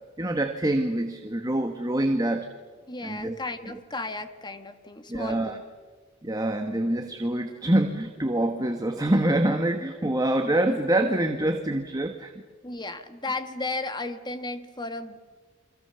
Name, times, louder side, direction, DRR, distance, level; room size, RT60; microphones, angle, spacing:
voice 1, 0.2-2.5 3.0-3.4 5.1-5.5 6.2-12.3, right 1 dB, 20° right, 5 dB, 1.5 m, -25 dB
voice 2, 2.9-5.6 12.6-15.2, left 2 dB, 20° left, 9 dB, 1.8 m, -34 dB
28.5 x 25.5 x 7.0 m, 1.4 s
head